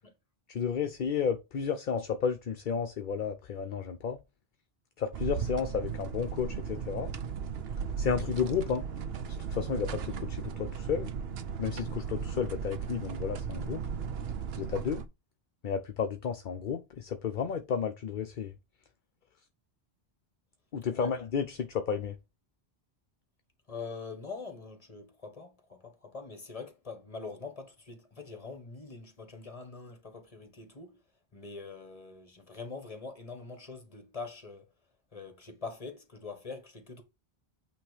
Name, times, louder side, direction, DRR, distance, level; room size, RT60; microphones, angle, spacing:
voice 1, 0.5-4.2 5.0-7.1 8.0-8.8 9.5-11.1 11.6-13.8 14.6-15.0 15.6-18.5 20.7-22.2, left 6 dB, 55° left, 0.8 m, -32 dB
sound 1, 5.1-15.1, right 7 dB, 75° right, 1.0 m, -36 dB
voice 2, 23.7-31.0 31.3-34.6 35.1-37.0, left 4 dB, 35° left, 1.6 m, -43 dB
8.7 x 3.1 x 4.9 m
omnidirectional pair, 1.1 m